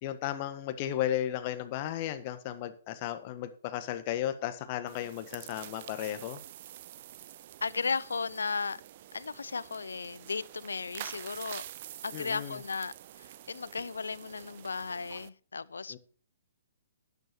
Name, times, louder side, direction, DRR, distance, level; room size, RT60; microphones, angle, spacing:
voice 1, 0.0-6.4 12.1-12.6 15.9-16.0, left 12 dB, 40° left, 1.5 m, -34 dB
sound 1, 4.9-15.3, right 13 dB, 45° right, 0.7 m, -47 dB
voice 2, 7.6-8.8 9.1-11.6 12.0-16.0, left 4 dB, 80° left, 0.6 m, -35 dB
12.0 x 9.8 x 4.6 m
figure-of-eight pair, 130°, 0 cm